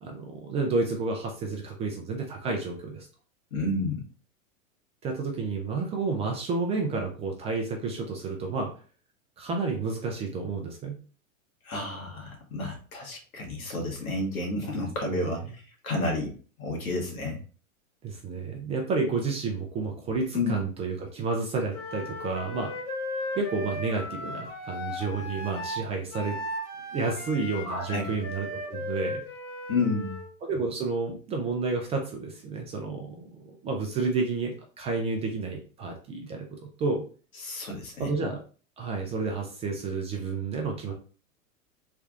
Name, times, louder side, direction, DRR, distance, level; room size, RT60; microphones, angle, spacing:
voice 1, 0.0-3.1 5.0-8.7 9.4-11.0 18.0-22.7 23.4-26.4 26.9-29.2 30.4-33.2 33.4-36.5 36.8-37.0 38.0-38.4 38.8-40.9, right 4 dB, 15° right, 2 dB, 0.4 m, -30 dB
voice 2, 3.5-4.0 11.6-15.4 15.8-17.4 20.3-20.6 27.6-28.1 29.7-30.2 37.4-38.1, left 2 dB, 85° left, 1 dB, 1.4 m, -30 dB
Wind instrument woodwind instrument, 21.7-30.3, left 1 dB, 60° left, 1.5 m, -36 dB
3.4 x 2.3 x 3.5 m, 0.39 s
hypercardioid pair, 105°, 41 cm